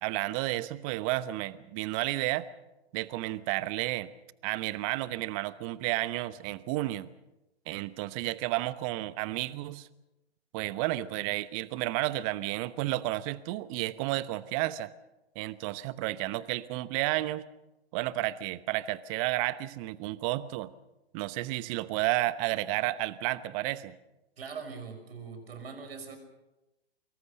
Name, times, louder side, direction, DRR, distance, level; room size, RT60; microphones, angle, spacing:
voice 1, 0.0-2.5 2.9-4.1 4.4-7.1 7.7-9.9 10.5-14.9 15.3-17.4 17.9-20.7 21.1-23.9, right 17 dB, 35° right, 16 dB, 1.0 m, -31 dB
voice 2, 24.4-26.2, right 5 dB, 65° right, 7 dB, 5.9 m, -42 dB
24.5 x 22.5 x 6.5 m, 0.98 s
figure-of-eight pair, 120°, 32 cm